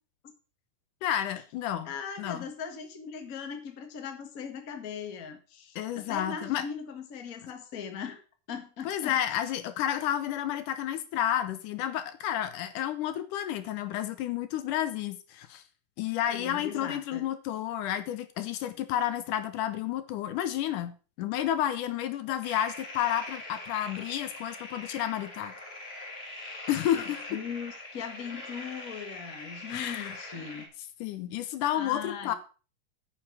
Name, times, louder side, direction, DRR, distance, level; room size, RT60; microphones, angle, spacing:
voice 1, 1.0-1.9 2.2-2.5 5.8-6.6 8.8-15.6 16.0-25.5 26.7-27.2 29.7-30.1 31.0-32.3, left 11 dB, 80° left, 11 dB, 2.3 m, -31 dB
voice 2, 1.8-8.2 8.5-9.2 16.2-17.2 26.9-27.0 27.3-30.7 31.7-32.3, left 6 dB, 40° left, 5 dB, 1.4 m, -39 dB
sound 1, 22.4-30.7, left 2 dB, 20° left, 1.9 m, -42 dB
9.1 x 6.9 x 6.0 m, 0.36 s
omnidirectional pair, 3.8 m